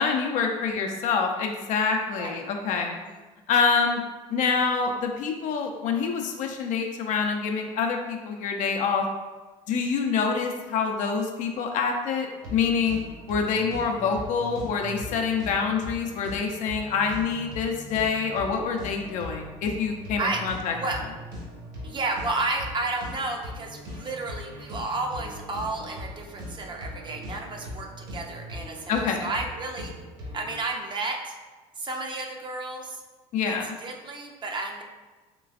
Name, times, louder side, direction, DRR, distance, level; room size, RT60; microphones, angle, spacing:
voice 1, 0.0-3.0 3.5-4.0 4.3-9.1 9.7-13.0 13.3-20.7 28.9-29.3 33.3-33.7, left 5 dB, 60° left, 2 dB, 0.6 m, -26 dB
sound 1, 12.4-30.6, left 1 dB, 65° right, 1.3 m, -40 dB
voice 2, 21.8-29.9 30.3-31.3 31.8-33.0 33.4-34.8, right 2 dB, 35° right, 2 dB, 0.6 m, -32 dB
3.8 x 3.1 x 2.5 m, 1.3 s
supercardioid pair, 80°, 14 cm